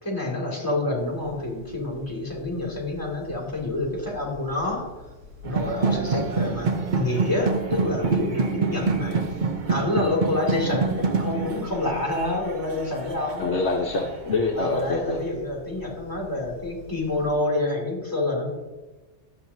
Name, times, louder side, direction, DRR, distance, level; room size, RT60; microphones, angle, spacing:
voice 1, 0.0-4.9 5.4-9.3 9.7-13.5 14.6-18.5, left 2 dB, 15° left, -3 dB, 2.3 m, -28 dB
sound 1, 0.9-17.4, left 2 dB, 75° right, 1.8 m, -47 dB
sound 2, 5.4-14.3, right 4 dB, 45° right, 0.7 m, -27 dB
voice 2, 13.4-15.2, left 3 dB, 70° left, 0 dB, 1.1 m, -25 dB
12.0 x 8.1 x 2.7 m, 1.1 s
omnidirectional pair, 1.3 m